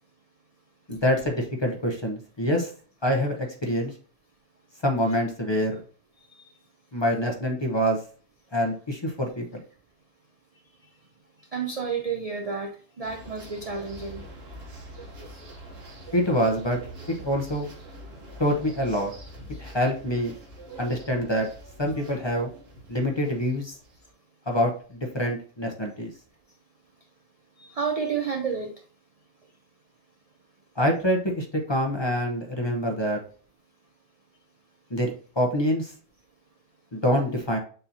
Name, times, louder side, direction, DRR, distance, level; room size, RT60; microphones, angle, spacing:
voice 1, 0.9-2.7 3.0-3.4 3.6-3.9 4.8-5.8 6.9-8.0 8.5-9.6 16.1-16.8 17.2-17.7 18.4-19.1 19.6-20.3 20.8-21.5 21.8-22.5 22.9-23.8 24.5-26.1 30.8-33.2 34.9-35.9 36.9-37.6, equal, 25° left, 2 dB, 0.6 m, -25 dB
voice 2, 11.5-14.2 27.6-28.7, right 5 dB, 70° right, 3 dB, 0.3 m, -30 dB
sound 1, 13.0-24.1, right 1 dB, 55° right, 1.3 m, -44 dB
6.8 x 2.8 x 2.7 m, 0.42 s
omnidirectional pair, 1.3 m